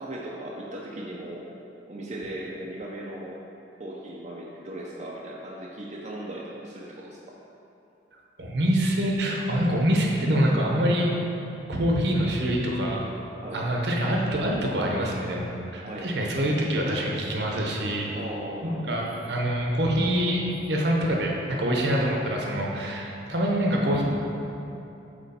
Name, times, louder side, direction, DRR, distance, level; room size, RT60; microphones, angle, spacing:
voice 1, 0.0-1.4 1.9-3.4 3.8-7.2 13.4-13.6 15.8-16.1 18.1-18.9, right 1 dB, 40° right, -4 dB, 0.5 m, -37 dB
voice 2, 8.4-11.1 11.7-13.0 13.5-18.2 18.6-24.0, equal, 65° right, -1 dB, 0.8 m, -25 dB
8.1 x 3.0 x 4.2 m, 2.9 s
head